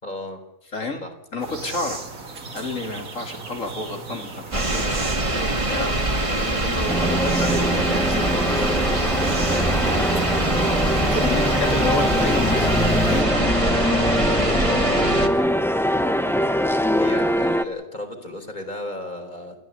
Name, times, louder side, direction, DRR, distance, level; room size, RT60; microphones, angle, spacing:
voice 1, 0.0-0.4 1.0-1.1 9.4-9.8 15.4-15.5 17.0-19.6, left 1 dB, 35° left, 4 dB, 4.1 m, -34 dB
voice 2, 0.7-1.0 1.3-8.3 8.6-8.7 11.1-14.4, left 3 dB, 70° left, 4 dB, 3.6 m, -30 dB
Birds Chirping in Griffith Park, 1.4-13.2, right 3 dB, 85° right, 2.7 m, -37 dB
sound 1, 4.5-15.3, right 2 dB, 25° right, 2.0 m, -24 dB
sound 2, 6.9-17.6, equal, ahead, 0.9 m, -22 dB
28.5 x 13.5 x 8.2 m, 0.88 s
omnidirectional pair, 1.4 m